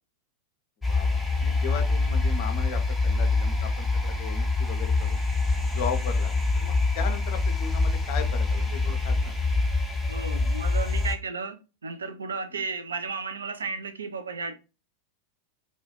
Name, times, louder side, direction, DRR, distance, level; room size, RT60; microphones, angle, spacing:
sound 1, 0.8-11.1, left 3 dB, ahead, 0.6 m, -25 dB
voice 1, 0.9-5.2 5.7-9.3 12.5-12.6, left 5 dB, 50° left, 0.5 m, -37 dB
voice 2, 10.1-14.5, right 4 dB, 70° right, 0.3 m, -34 dB
2.3 x 2.0 x 3.0 m
figure-of-eight pair, 90°, 0 cm